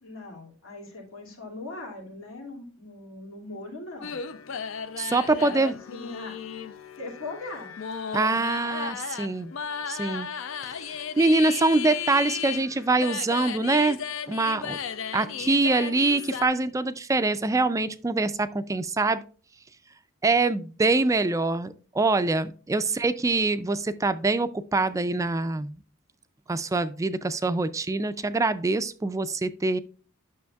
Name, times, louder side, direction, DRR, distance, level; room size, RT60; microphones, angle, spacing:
voice 1, 0.0-4.2 5.4-6.4 7.0-7.7, left 2 dB, 90° left, 0 dB, 2.4 m, -40 dB
sound 1, 4.0-16.5, left 7 dB, 70° left, 0.5 m, -35 dB
voice 2, 5.0-5.7 8.1-9.5 9.9-10.3 11.2-14.0 14.3-14.8 15.1-19.2 20.2-25.7 26.5-29.8, right 3 dB, 15° right, 13 dB, 0.3 m, -24 dB
9.4 x 6.4 x 2.3 m, 0.40 s
head